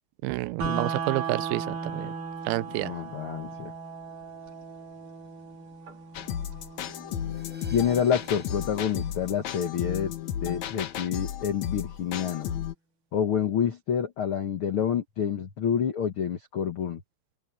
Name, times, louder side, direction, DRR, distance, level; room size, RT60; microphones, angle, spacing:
voice 1, 0.2-2.1 2.5-2.9, right 19 dB, 80° right, 2.5 m, -29 dB
sound 1, 0.6-10.6, right 5 dB, 55° right, 5.3 m, -38 dB
voice 2, 2.8-3.7 7.7-10.1 10.4-12.5 13.1-17.0, left 8 dB, 85° left, 1.1 m, -28 dB
sound 2, 6.1-12.7, left 10 dB, 65° left, 1.9 m, -34 dB
sound 3, 7.1-10.1, right 1 dB, ahead, 7.1 m, -54 dB
open air
omnidirectional pair, 4.5 m